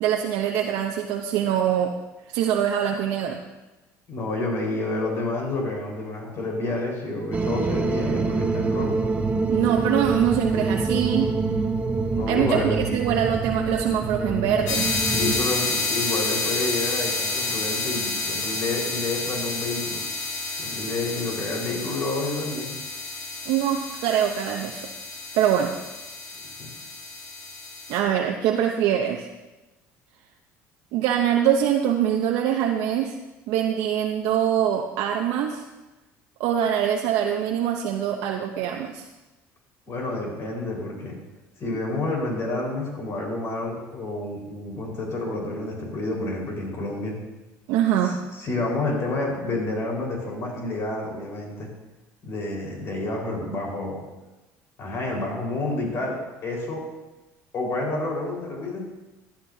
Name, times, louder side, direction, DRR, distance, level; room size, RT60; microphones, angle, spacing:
voice 1, 0.0-1.9 2.3-3.4 9.5-11.3 12.3-14.9 23.5-24.9 25.3-25.7 27.9-29.3 30.9-33.1 33.5-35.6 36.4-39.1 47.7-48.2, right 10 dB, 80° right, 2 dB, 0.8 m, -23 dB
voice 2, 4.1-8.9 12.1-12.8 15.0-20.0 20.6-22.8 26.6-26.7 39.9-41.1 41.6-47.1 48.0-51.7 52.2-54.0 54.8-56.2 56.4-56.8 57.5-58.8, left 2 dB, 45° left, -1 dB, 4.6 m, -29 dB
sound 1, 7.3-15.5, right 3 dB, 25° right, 1.0 m, -25 dB
sound 2, 14.7-28.0, left 3 dB, 85° left, 3.0 m, -30 dB
16.0 x 12.0 x 2.8 m, 1.1 s
cardioid pair, 115°, 6 cm